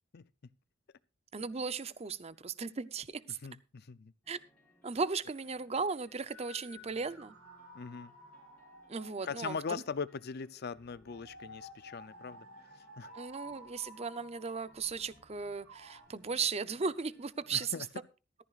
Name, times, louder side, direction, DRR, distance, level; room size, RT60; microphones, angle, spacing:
voice 1, 1.3-3.4 4.3-4.4 4.8-7.3 8.9-9.8 13.1-17.7, right 5 dB, 30° right, 0.6 m, -36 dB
voice 2, 3.3-4.1 7.7-8.1 9.2-13.1 17.5-17.9, left 5 dB, 50° left, 0.5 m, -41 dB
sound 1, 4.2-17.6, equal, 5° left, 4.8 m, -67 dB
sound 2, 6.3-10.1 11.1-16.1, equal, 75° right, 2.0 m, -53 dB
15.0 x 14.0 x 2.4 m
head